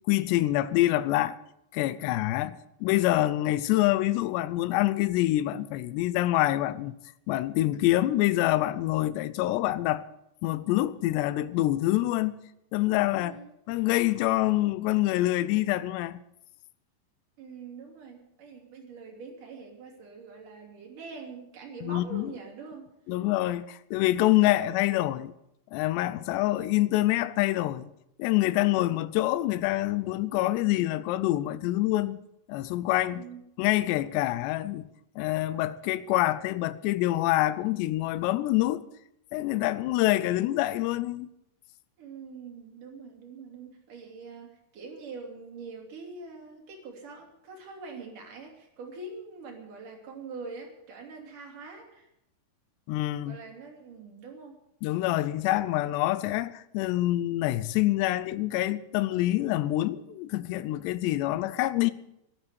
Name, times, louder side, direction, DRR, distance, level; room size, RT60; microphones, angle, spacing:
voice 1, 0.1-1.4 1.7-7.0 7.3-10.0 10.4-12.4 12.7-13.3 13.7-16.2 21.8-22.3 23.1-25.3 25.7-27.9 28.2-32.2 32.5-33.2 33.6-34.9 35.2-38.8 39.3-41.3 52.9-53.4 54.8-61.9, left 16 dB, 80° left, 2.8 m, -26 dB
voice 2, 13.2-13.5 17.4-22.9 33.1-33.4 42.0-52.1 53.3-54.6, right 4 dB, 50° right, 4.4 m, -44 dB
13.0 x 12.5 x 8.2 m
omnidirectional pair, 5.2 m